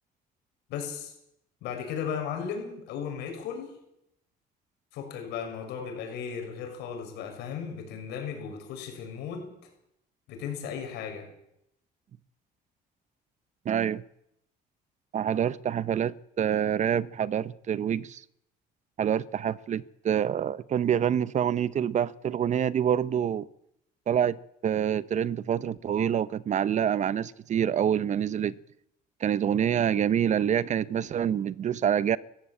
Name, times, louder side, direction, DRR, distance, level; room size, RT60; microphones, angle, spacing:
voice 1, 0.7-1.1 1.6-3.8 4.9-9.5 10.3-11.3, left 7 dB, 85° left, 4 dB, 6.7 m, -36 dB
voice 2, 13.6-14.0 15.1-18.2 19.0-23.5 24.1-24.4 24.6-28.5 29.2-32.2, right 9 dB, 45° right, 18 dB, 0.8 m, -26 dB
19.5 x 15.0 x 8.9 m, 0.77 s
cardioid pair, 110°, 17 cm